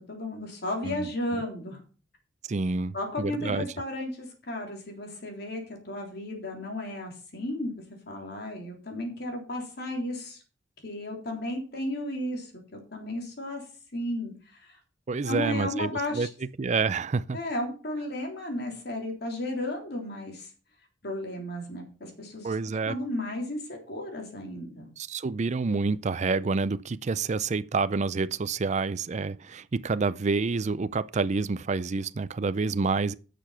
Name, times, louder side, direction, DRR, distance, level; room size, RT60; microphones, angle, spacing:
voice 1, 0.1-1.8 2.9-7.7 8.1-10.4 10.8-13.6 13.9-14.8 15.2-16.3 17.3-20.5 21.0-22.5 22.8-24.9, left 1 dB, 65° left, 3.6 m, -34 dB
voice 2, 2.5-3.7 15.1-16.3 16.6-17.4 22.4-23.0 25.0-33.1, right 4 dB, 40° right, 0.5 m, -28 dB
11.0 x 6.9 x 5.8 m
head